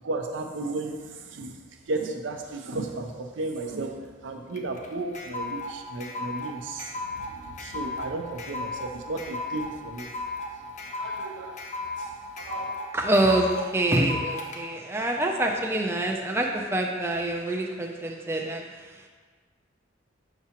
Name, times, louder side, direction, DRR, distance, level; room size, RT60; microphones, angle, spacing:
voice 1, 0.0-1.6 1.9-10.1 11.0-11.6 12.0-12.1 12.4-12.7, right 2 dB, 75° right, 4 dB, 0.6 m, -34 dB
sound 1, 4.5-14.6, left 2 dB, 40° left, 0.6 m, -35 dB
voice 2, 12.9-18.6 18.9-19.1, right 1 dB, 15° right, 0 dB, 0.4 m, -26 dB
5.9 x 5.7 x 2.9 m, 1.5 s
head